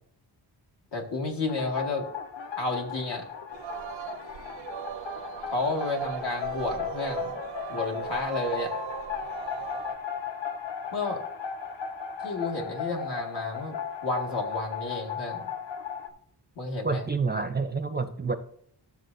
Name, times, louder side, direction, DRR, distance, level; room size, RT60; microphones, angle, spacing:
voice 1, 0.9-2.0 2.6-3.2 5.4-7.3 7.7-8.7 10.9-11.2 12.2-13.8 14.0-15.5 16.6-17.0, left 2 dB, 70° left, 1 dB, 1.8 m, -31 dB
sound 1, 1.5-16.1, left 8 dB, 90° left, 0.9 m, -36 dB
Singing, 3.5-10.0, right 11 dB, 85° right, 0.6 m, -38 dB
voice 2, 16.8-18.3, right 4 dB, 25° right, 7 dB, 0.5 m, -28 dB
12.5 x 7.2 x 2.6 m, 0.65 s
wide cardioid pair, 155°, 43 cm